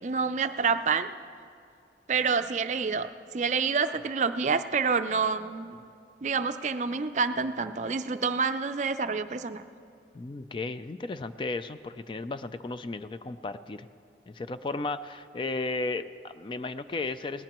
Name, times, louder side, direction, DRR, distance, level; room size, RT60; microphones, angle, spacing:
voice 1, 0.0-1.1 2.1-3.1 3.3-5.8 6.2-9.6, right 5 dB, 40° right, 10 dB, 0.4 m, -28 dB
voice 2, 10.1-13.9 14.3-17.4, left 3 dB, 30° left, 11 dB, 0.3 m, -34 dB
19.5 x 17.5 x 3.0 m, 2.4 s
head